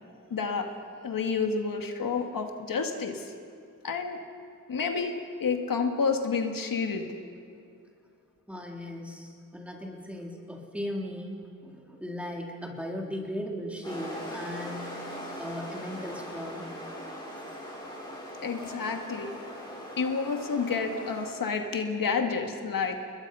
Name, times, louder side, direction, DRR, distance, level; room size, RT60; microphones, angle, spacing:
voice 1, 0.3-0.7 1.0-3.3 3.8-4.2 4.7-5.1 5.4-7.1 18.4-19.4 20.0-23.0, left 5 dB, 80° left, 4 dB, 2.0 m, -29 dB
voice 2, 8.5-11.4 11.6-14.9 15.4-16.7, equal, 5° right, 0 dB, 3.7 m, -37 dB
sound 1, 13.8-21.3, equal, 15° left, 6.7 m, -40 dB
29.5 x 21.0 x 5.6 m, 2.4 s
wide cardioid pair, 115°, 33 cm